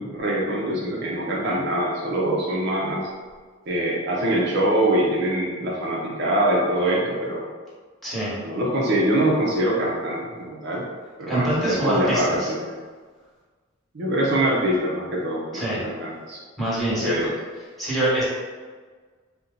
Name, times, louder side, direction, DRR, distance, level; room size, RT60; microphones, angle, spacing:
voice 1, 0.0-3.1 3.7-7.4 8.4-10.8 11.2-12.8 13.9-16.4 17.0-17.3, right 1 dB, 55° right, -4 dB, 0.6 m, -24 dB
voice 2, 8.0-8.4 11.3-12.5 15.5-15.8 16.6-17.2 17.8-18.2, right 1 dB, ahead, -9 dB, 1.4 m, -24 dB
4.2 x 2.1 x 3.9 m, 1.5 s
head